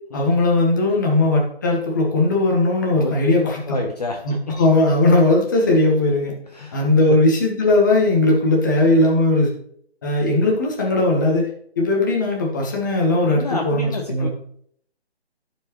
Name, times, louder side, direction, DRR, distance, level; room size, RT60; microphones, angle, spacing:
voice 1, 0.1-3.8 4.2-6.3 6.7-9.5 10.0-11.5 11.8-14.3, left 2 dB, 20° left, -1 dB, 1.1 m, -18 dB
voice 2, 2.9-3.3 3.6-4.2 6.5-7.2 13.3-14.3, left 3 dB, 40° left, 1 dB, 0.8 m, -27 dB
14.0 x 4.7 x 3.0 m, 0.65 s
figure-of-eight pair, 165°, 33 cm